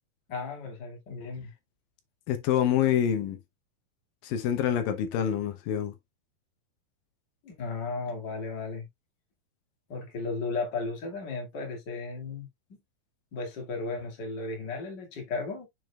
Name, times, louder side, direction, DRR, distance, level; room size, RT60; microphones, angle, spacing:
voice 1, 0.3-1.5 7.4-8.9 9.9-12.5 13.3-15.7, left 3 dB, 35° left, 2.2 m, -35 dB
voice 2, 2.3-3.4 4.2-5.9, left 10 dB, 70° left, 2.6 m, -26 dB
7.1 x 6.3 x 2.3 m
omnidirectional pair, 4.4 m